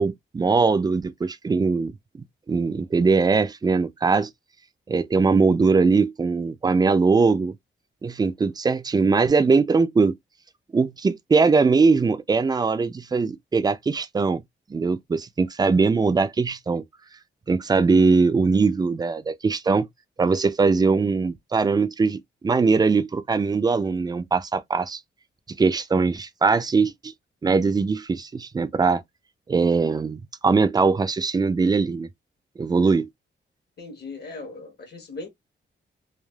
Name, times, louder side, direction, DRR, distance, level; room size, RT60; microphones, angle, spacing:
voice 1, 0.0-1.9 2.5-4.3 4.9-7.5 8.0-10.1 10.7-14.4 14.7-16.8 17.5-19.9 20.2-25.0 25.6-27.1 27.4-29.0 29.5-32.1 32.6-33.1, right 4 dB, 20° right, 0.3 m, -21 dB
voice 2, 33.8-35.3, left 3 dB, 55° left, 1.0 m, -38 dB
3.2 x 2.2 x 2.2 m
wide cardioid pair, 120°, 20 cm